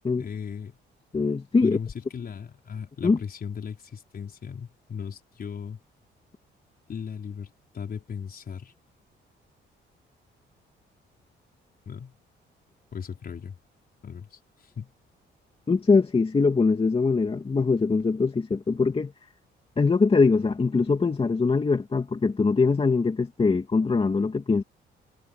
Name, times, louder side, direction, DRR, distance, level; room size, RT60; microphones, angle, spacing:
voice 1, 0.2-0.8 1.6-5.8 6.9-8.7 11.9-12.2 12.9-13.6 14.0-14.9, left 7 dB, 50° left, 5.4 m, -37 dB
voice 2, 1.1-1.8 3.0-3.2 15.7-19.1 19.8-24.6, left 4 dB, 30° left, 2.2 m, -22 dB
cardioid pair, 90°, 20 cm